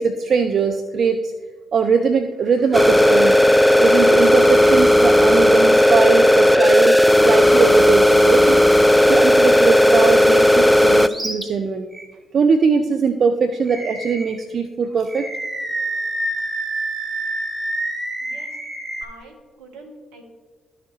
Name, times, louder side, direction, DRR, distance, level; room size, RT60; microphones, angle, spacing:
voice 1, 0.0-1.3 1.7-3.4 3.8-8.6 9.1-11.9 12.3-15.3, right 5 dB, 55° right, 8 dB, 0.5 m, -20 dB
sound 1, 2.7-11.1, left 1 dB, 5° left, 0.4 m, -13 dB
Animal, 11.1-11.4 11.9-12.1 13.7-14.4 15.1-19.0, right 2 dB, 20° right, 1.5 m, -27 dB
voice 2, 18.2-18.5 19.0-20.2, right 2 dB, 80° right, 3 dB, 1.1 m, -44 dB
13.0 x 4.8 x 3.1 m, 1.5 s
hypercardioid pair, 45°, 0 cm